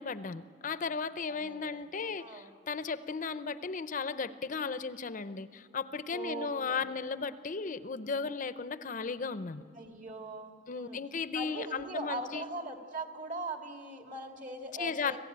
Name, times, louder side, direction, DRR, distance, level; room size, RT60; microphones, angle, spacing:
voice 1, 0.0-9.6 10.7-12.4 14.8-15.2, left 5 dB, 45° left, 13 dB, 0.6 m, -35 dB
voice 2, 1.3-1.8 2.2-2.5 6.1-6.8 9.8-11.0 11.3-15.2, right 2 dB, 45° right, 4 dB, 2.0 m, -41 dB
26.0 x 15.5 x 8.7 m, 2.2 s
head